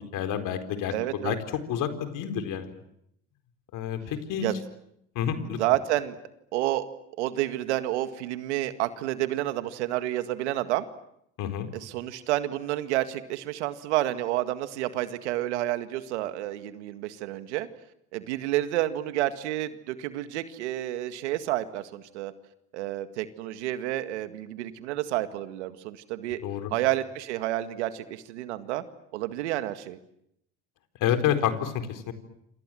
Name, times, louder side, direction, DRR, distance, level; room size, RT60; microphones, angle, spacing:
voice 1, 0.1-0.9 1.2-1.4 1.7-2.7 3.7-4.5 5.1-5.6 11.4-11.7 26.4-26.7 31.0-32.1, left 9 dB, 65° left, 8 dB, 4.4 m, -28 dB
voice 2, 0.9-1.4 4.4-4.6 5.6-6.2 6.5-6.8 7.2-10.9 11.7-17.7 18.1-22.3 22.7-26.4 26.7-28.8 29.1-30.0, right 14 dB, 90° right, 10 dB, 1.9 m, -29 dB
28.0 x 26.5 x 7.7 m, 0.78 s
supercardioid pair, 75°, 34 cm